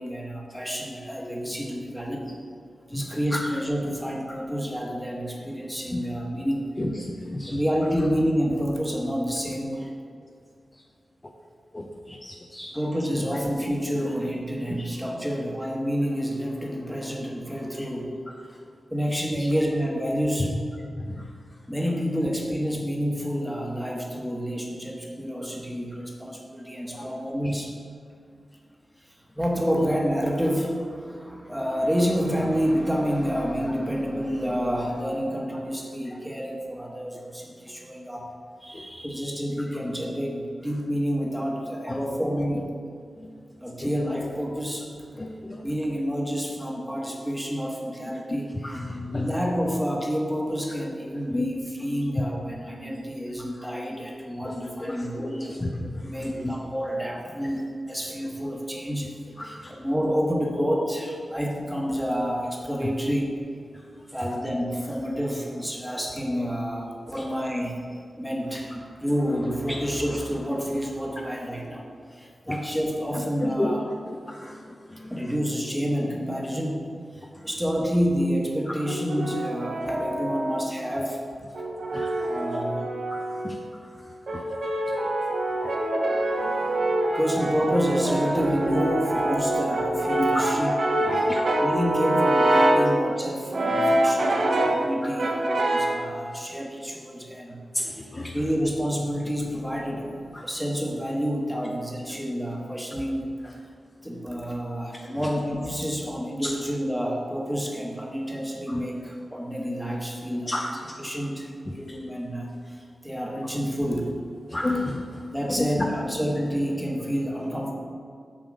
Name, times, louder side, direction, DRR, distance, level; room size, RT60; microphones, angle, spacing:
voice 1, 0.0-2.3 2.9-6.7 7.5-9.9 12.7-18.1 18.9-20.6 21.7-27.7 29.1-38.3 38.6-42.7 43.6-44.9 45.6-55.6 55.8-63.3 64.1-67.8 68.2-73.9 75.1-81.2 82.3-82.9 85.2-90.8 91.1-94.4 94.7-97.6 98.3-103.3 104.0-112.8 113.0-114.1 115.3-117.7, equal, ahead, -1 dB, 1.3 m, -29 dB
voice 2, 11.7-12.7 19.3-19.5 21.0-21.1 26.9-27.1 38.7-38.8 41.9-42.0 43.8-43.9 45.2-45.6 48.6-49.3 51.3-51.5 54.5-54.6 55.2-55.3 55.6-55.9 56.2-56.5 59.4-59.7 73.4-73.7 74.3-74.6 81.9-82.1 83.4-83.6 91.3-91.4 94.5-94.7 95.0-95.1 96.0-96.1 97.7-98.4 100.3-100.4 106.4-106.5 110.5-110.7 114.5-115.0 115.5-115.6, left 2 dB, 20° left, 0 dB, 0.6 m, -31 dB
Brass instrument, 78.9-80.8 81.5-83.6 84.3-92.9 93.5-94.9 95.2-96.0, right 1 dB, 60° right, 0.9 m, -25 dB
7.5 x 6.7 x 4.9 m, 2.3 s
wide cardioid pair, 120°, 0 cm